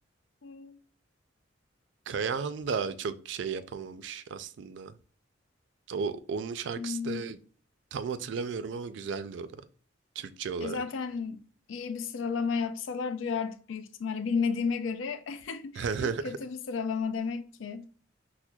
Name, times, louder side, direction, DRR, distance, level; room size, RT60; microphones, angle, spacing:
voice 1, 0.4-0.8 6.8-7.2 10.6-11.4 11.7-17.8, left 5 dB, 85° left, 0.4 m, -33 dB
voice 2, 2.1-4.9 5.9-7.4 7.9-9.6 10.2-10.8 15.8-16.2, right 5 dB, 65° right, 0.3 m, -34 dB
5.9 x 2.1 x 2.2 m
head